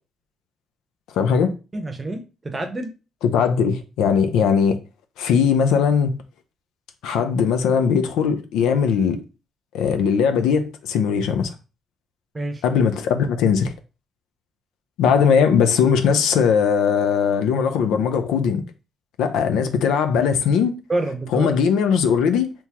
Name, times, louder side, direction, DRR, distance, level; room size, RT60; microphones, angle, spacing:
voice 1, 1.1-1.5 3.3-4.8 5.2-6.2 7.0-9.2 9.7-11.5 12.6-13.7 15.0-18.6 19.2-20.7 21.3-22.5, left 6 dB, 90° left, 0.4 m, -19 dB
voice 2, 1.7-2.9 12.3-12.6 20.9-21.6, right 2 dB, 25° right, 0.7 m, -27 dB
3.5 x 2.9 x 2.8 m
cardioid pair, 90°, 0 cm